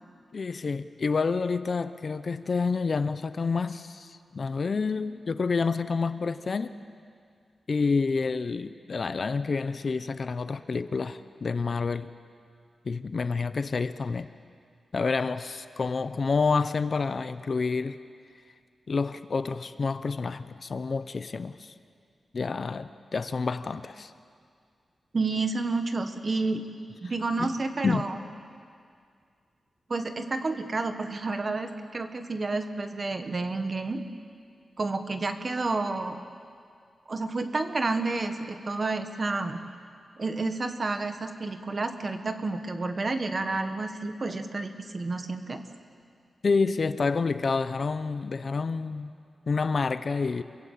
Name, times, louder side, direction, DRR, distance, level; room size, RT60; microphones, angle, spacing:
voice 1, 0.3-6.7 7.7-12.1 12.8-14.3 14.9-18.0 18.9-21.7 22.3-24.1 27.4-27.5 27.8-28.0 46.4-49.1 49.5-50.4, left 4 dB, 45° left, 12 dB, 0.7 m, -28 dB
voice 2, 25.1-26.6 27.0-28.2 29.9-34.0 34.8-36.2 37.1-39.6 40.2-45.6, right 3 dB, 35° right, 7 dB, 1.6 m, -30 dB
27.5 x 22.5 x 8.5 m, 2.2 s
wide cardioid pair, 170°, 0 cm